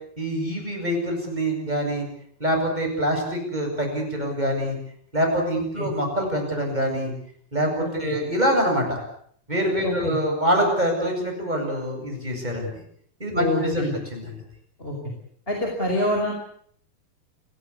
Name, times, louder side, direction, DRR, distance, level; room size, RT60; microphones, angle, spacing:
voice 1, 0.2-2.1 2.4-4.8 5.1-7.1 7.5-9.0 9.5-12.7 13.2-13.8 14.1-14.3, equal, 10° right, 1 dB, 8.0 m, -25 dB
voice 2, 9.8-10.1 13.3-13.9 14.8-14.9 15.5-16.3, left 1 dB, 15° left, 1 dB, 5.3 m, -26 dB
29.0 x 18.0 x 8.5 m, 0.63 s
omnidirectional pair, 4.4 m